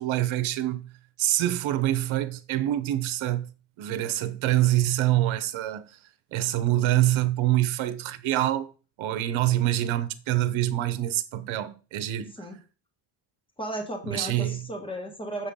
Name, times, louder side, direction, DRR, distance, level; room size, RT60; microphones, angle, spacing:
voice 1, 0.0-3.5 3.8-6.0 6.3-8.7 9.0-12.3 14.0-14.7, right 14 dB, 75° right, 1.0 m, -26 dB
voice 2, 13.6-15.5, right 1 dB, 10° left, 1.5 m, -34 dB
7.5 x 5.8 x 3.7 m
cardioid pair, 150°, 48 cm